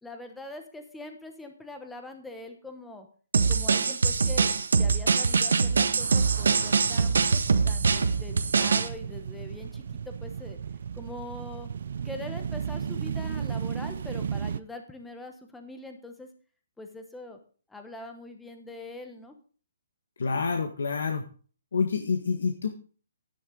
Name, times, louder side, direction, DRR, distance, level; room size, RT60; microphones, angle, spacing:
voice 1, 0.0-3.1 3.5-10.6 10.9-11.7 12.0-16.3 16.8-17.4 17.7-19.4, left 2 dB, 5° left, 5 dB, 1.0 m, -43 dB
sound 1, 3.3-8.9, right 5 dB, 80° right, 1.5 m, -23 dB
sound 2, 6.0-14.6, right 7 dB, 45° right, 0.5 m, -35 dB
voice 2, 20.2-21.2 21.7-22.7, left 5 dB, 70° left, 4 dB, 1.6 m, -27 dB
12.0 x 10.0 x 3.9 m, 0.40 s
hypercardioid pair, 180°, 0 cm